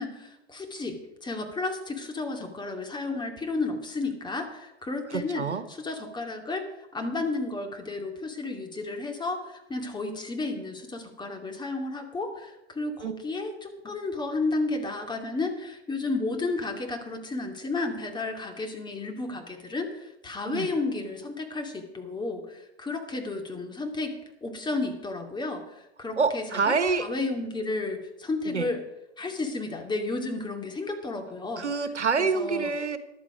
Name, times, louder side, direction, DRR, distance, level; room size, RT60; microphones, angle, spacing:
voice 1, 0.0-28.8 29.2-31.7 32.2-32.7, left 3 dB, 15° left, 4 dB, 2.6 m, -32 dB
voice 2, 5.1-5.7 13.0-13.1 20.4-20.7 26.2-27.0 28.4-28.7 31.6-33.0, right 5 dB, 85° right, 12 dB, 1.3 m, -27 dB
14.0 x 11.5 x 5.0 m, 0.95 s
figure-of-eight pair, 100°, 34 cm